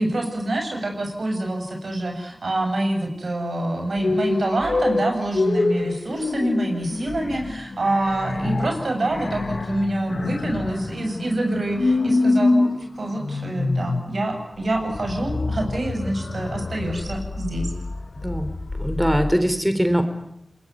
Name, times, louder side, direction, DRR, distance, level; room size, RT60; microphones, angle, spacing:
voice 1, 0.0-17.7, right 1 dB, 80° right, 3 dB, 7.6 m, -26 dB
sound 1, 4.0-19.3, left 3 dB, 70° left, 1.4 m, -26 dB
voice 2, 18.8-20.0, equal, 5° right, 8 dB, 3.7 m, -21 dB
27.0 x 21.5 x 9.7 m, 0.76 s
cardioid pair, 40°, 0 cm